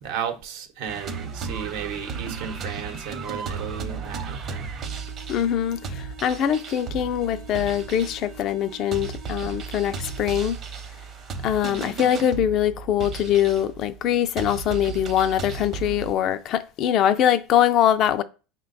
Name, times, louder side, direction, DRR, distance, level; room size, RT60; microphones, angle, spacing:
voice 1, 0.0-4.7, right 8 dB, 70° right, 0.9 m, -34 dB
sound 1, 0.9-16.1, right 5 dB, 35° right, 0.8 m, -35 dB
voice 2, 5.3-10.6 11.4-18.2, left 10 dB, 45° left, 0.3 m, -23 dB
5.1 x 2.2 x 4.0 m
supercardioid pair, 125°, 0 cm